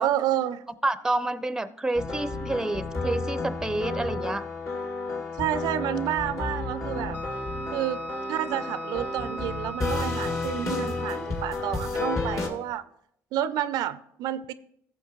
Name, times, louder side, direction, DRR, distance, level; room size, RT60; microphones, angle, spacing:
voice 1, 0.0-0.6 5.4-7.2 7.7-8.0 8.3-12.8 13.3-14.5, right 11 dB, 80° right, 0.4 m, -29 dB
voice 2, 0.8-4.5, right 2 dB, 10° right, 0.5 m, -28 dB
sound 1, 1.9-12.5, left 3 dB, 50° left, 2.2 m, -31 dB
Wind instrument woodwind instrument, 7.1-11.3, right 2 dB, 20° left, 1.1 m, -39 dB
15.0 x 7.0 x 3.0 m
cardioid pair, 95°, 7 cm